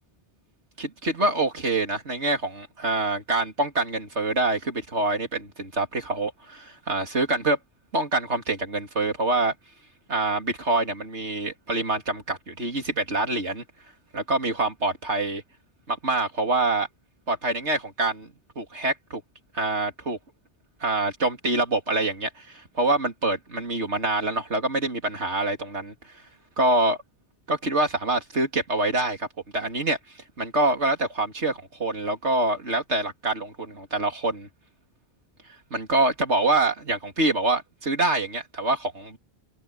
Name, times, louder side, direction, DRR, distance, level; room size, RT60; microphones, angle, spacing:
voice 1, 0.8-7.6 7.9-9.5 10.1-13.6 14.1-15.4 15.9-16.9 17.3-18.3 18.6-19.2 19.5-20.2 20.8-26.0 26.6-27.0 27.5-29.3 29.5-30.0 30.4-34.5 35.7-39.2, right 2 dB, 85° right, 3.5 m, -25 dB
omnidirectional pair, 1.1 m